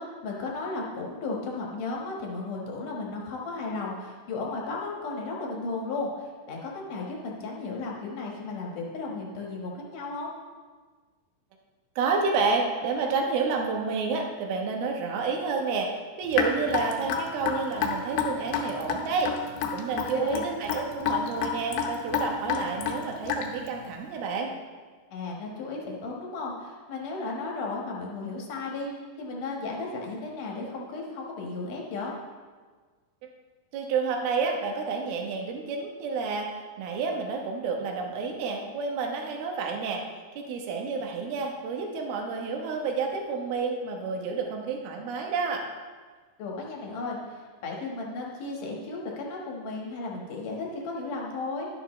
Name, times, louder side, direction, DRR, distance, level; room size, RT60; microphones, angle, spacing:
voice 1, 0.0-10.3 20.1-20.4 25.1-28.9 29.2-32.1 46.4-51.7, left 3 dB, 60° left, -2 dB, 2.4 m, -34 dB
voice 2, 12.0-15.9 16.2-19.3 19.7-24.5 33.7-36.5 36.8-40.0 40.4-45.6, right 4 dB, 70° right, 1 dB, 2.8 m, -29 dB
Raindrop / Drip, 16.3-23.7, left 7 dB, 85° left, 3.3 m, -29 dB
11.5 x 11.5 x 3.1 m, 1.5 s
omnidirectional pair, 5.1 m